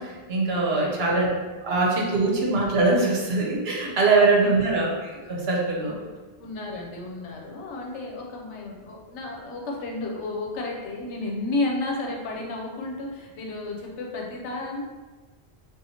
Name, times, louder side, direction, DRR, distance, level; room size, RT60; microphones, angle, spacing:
voice 1, 0.0-1.3 1.6-6.0, right 3 dB, 65° right, -2 dB, 0.9 m, -22 dB
voice 2, 0.7-1.8 4.1-4.5 5.8-6.0 6.4-14.8, left 2 dB, 80° left, -1 dB, 1.0 m, -32 dB
4.1 x 2.4 x 2.8 m, 1.3 s
omnidirectional pair, 1.2 m